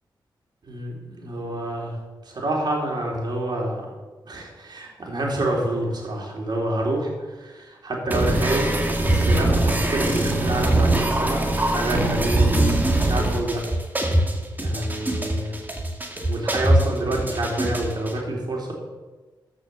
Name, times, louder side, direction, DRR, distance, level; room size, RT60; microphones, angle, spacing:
voice 1, 0.6-2.0 2.3-3.9 4.3-7.1 7.4-8.7 9.0-12.7 13.0-13.6 14.6-15.5 16.2-18.7, right 1 dB, 60° right, -1 dB, 3.8 m, -27 dB
sound 1, 8.1-18.1, right 1 dB, 20° right, 2.0 m, -22 dB
14.5 x 6.2 x 7.0 m, 1.2 s
cardioid pair, 75°, 8 cm